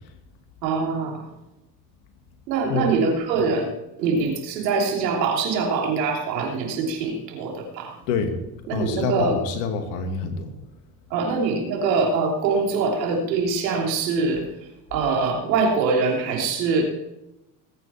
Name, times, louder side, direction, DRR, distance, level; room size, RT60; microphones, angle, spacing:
voice 1, 0.6-1.3 2.5-3.7 4.0-8.0 8.7-9.4 10.2-10.3 11.1-14.5 14.9-16.8, right 4 dB, 85° right, 1 dB, 3.3 m, -23 dB
voice 2, 8.1-8.4 8.7-10.5, left 4 dB, 80° left, 7 dB, 2.3 m, -26 dB
21.0 x 9.3 x 4.3 m, 0.91 s
hypercardioid pair, 70°, 49 cm